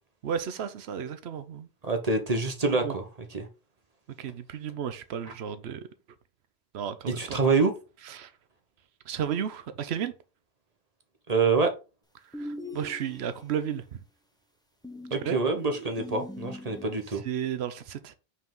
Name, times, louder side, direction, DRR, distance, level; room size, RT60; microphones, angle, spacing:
voice 1, 0.2-1.7 2.8-2.9 4.2-5.8 6.7-7.4 8.1-8.3 9.1-10.1 12.4-14.0 15.2-15.4 17.2-18.1, right 8 dB, 80° right, 1.0 m, -33 dB
voice 2, 1.8-3.5 5.3-5.4 7.1-7.7 11.3-11.7 15.1-17.2, right 4 dB, 40° right, 1.1 m, -26 dB
sound 1, 12.3-13.6 14.8-17.0, equal, 5° left, 0.7 m, -41 dB
5.6 x 4.8 x 3.8 m
omnidirectional pair, 1.1 m